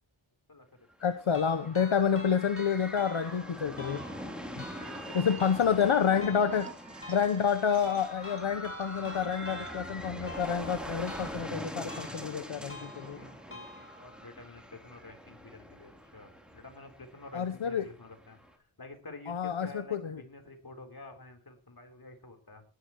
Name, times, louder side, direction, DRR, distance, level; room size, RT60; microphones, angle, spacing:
sound 1, 0.9-18.5, equal, ahead, 3.5 m, -44 dB
voice 1, 1.0-4.0 4.6-4.7 5.1-6.7 7.1-13.2 17.3-17.8 19.3-20.2, left 7 dB, 75° left, 8 dB, 1.1 m, -28 dB
sound 2, 1.3-14.3, left 1 dB, 25° left, 6.8 m, -48 dB
voice 2, 4.7-5.8 13.1-18.4 18.8-22.6, left 2 dB, 45° left, 4 dB, 4.0 m, -49 dB
sound 3, 4.8-9.8, right 4 dB, 90° right, 3.1 m, -49 dB
19.5 x 12.0 x 3.1 m, 0.34 s
wide cardioid pair, 85°, 49 cm